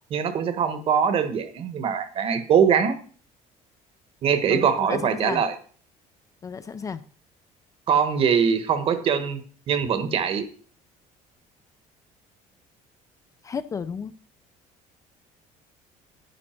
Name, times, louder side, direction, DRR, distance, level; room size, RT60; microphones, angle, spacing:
voice 1, 0.1-2.9 4.2-5.5 7.9-9.4 9.7-10.5, right 7 dB, 40° right, 1.2 m, -22 dB
voice 2, 4.5-5.4 6.4-7.0 13.4-14.1, left 6 dB, 20° left, 0.4 m, -32 dB
10.5 x 9.5 x 4.4 m
cardioid pair, 160°, 15 cm